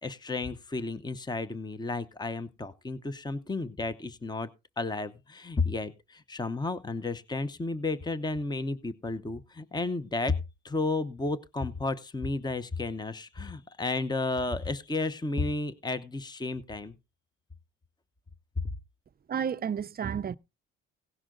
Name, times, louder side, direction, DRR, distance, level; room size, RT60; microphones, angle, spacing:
voice 1, 0.0-4.5 4.8-10.4 10.6-17.0, left 3 dB, 15° left, 0.9 m, -32 dB
voice 2, 19.3-20.4, right 8 dB, 30° right, 0.5 m, -31 dB
17.5 x 6.1 x 3.8 m
cardioid pair, 90°, 30 cm